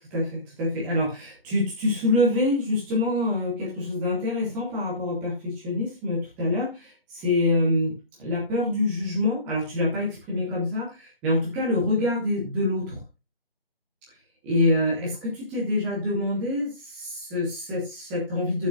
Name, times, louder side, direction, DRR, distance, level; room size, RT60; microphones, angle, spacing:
voice 1, 0.1-13.0 14.4-18.7, left 2 dB, 5° right, -5 dB, 1.3 m, -26 dB
15.0 x 7.3 x 2.4 m, 0.25 s
figure-of-eight pair, 165°, 30 cm